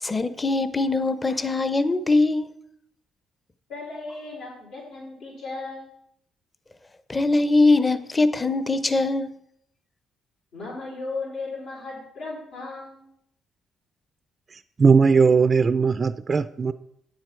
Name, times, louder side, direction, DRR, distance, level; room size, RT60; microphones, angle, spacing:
voice 1, 0.0-2.5 7.1-9.3, left 3 dB, 25° left, 0.7 m, -22 dB
voice 2, 3.7-5.9 10.5-13.0, left 3 dB, 80° left, 4.2 m, -36 dB
voice 3, 14.5-16.7, right 5 dB, 40° right, 0.3 m, -19 dB
9.5 x 7.4 x 4.5 m
cardioid pair, 80°, 0 cm